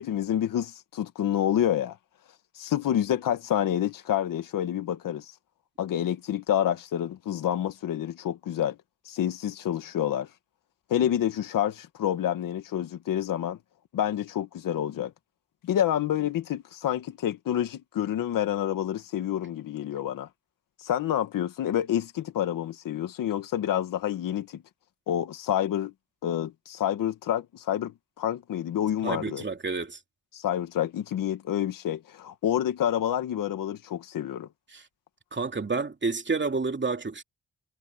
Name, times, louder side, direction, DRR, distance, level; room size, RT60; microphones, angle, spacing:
voice 1, 0.0-2.0 2.6-5.3 5.8-8.8 9.1-10.3 10.9-13.6 13.9-15.1 15.6-20.3 20.8-24.6 25.1-25.9 26.2-29.4 30.3-34.5, left 10 dB, 90° left, 2.1 m, -28 dB
voice 2, 29.0-30.0 34.7-34.8 35.3-37.2, right 4 dB, 35° right, 2.8 m, -29 dB
cardioid pair, 60°, 32 cm